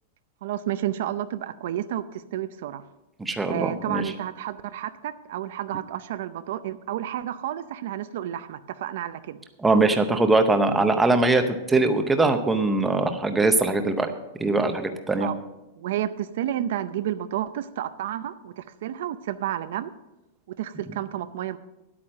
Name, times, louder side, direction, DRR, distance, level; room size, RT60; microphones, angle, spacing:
voice 1, 0.4-2.9 3.5-9.4 15.2-15.3 15.8-19.9 20.5-21.6, right 12 dB, 55° right, 12 dB, 0.5 m, -31 dB
voice 2, 3.2-4.0 9.6-14.1 14.4-15.3, right 2 dB, 5° right, 6 dB, 0.7 m, -21 dB
10.5 x 8.6 x 6.4 m, 0.99 s
supercardioid pair, 175°, 0 cm